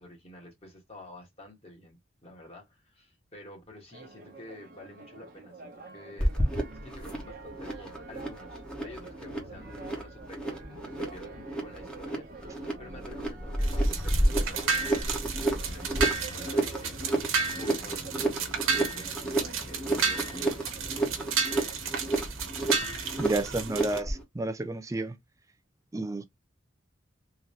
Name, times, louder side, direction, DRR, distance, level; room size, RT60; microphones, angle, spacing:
voice 1, 0.0-6.3 6.8-17.0 17.3-21.2, left 1 dB, 30° left, 1.6 m, -49 dB
Church bell, 3.9-22.3, right 3 dB, 45° right, 1.0 m, -48 dB
sound 1, 6.2-24.2, right 1 dB, 5° left, 1.1 m, -31 dB
sound 2, 13.6-24.0, right 5 dB, 85° right, 1.1 m, -32 dB
voice 2, 23.2-25.2 25.9-26.3, right 2 dB, 15° right, 0.3 m, -31 dB
3.7 x 2.8 x 3.1 m
head